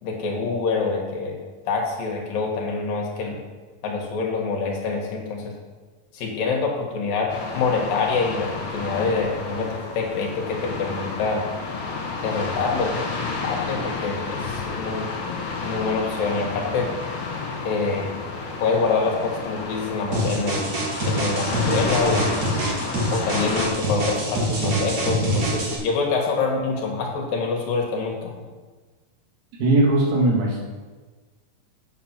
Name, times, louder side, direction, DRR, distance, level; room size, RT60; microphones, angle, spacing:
voice 1, 0.0-1.4 1.7-3.4 3.8-5.5 6.1-11.4 12.2-12.9 13.4-15.1 15.6-16.9 17.6-18.1 18.6-20.7 21.0-22.3 23.1-28.3, left 4 dB, 75° left, 0 dB, 3.0 m, -26 dB
sound 1, 7.3-23.7, left 4 dB, 55° left, 1.5 m, -31 dB
sound 2, 20.1-25.8, right 1 dB, 45° right, 1.3 m, -25 dB
voice 2, 29.6-30.6, right 2 dB, 90° right, -3 dB, 3.9 m, -19 dB
7.8 x 7.5 x 5.9 m, 1.4 s
omnidirectional pair, 4.1 m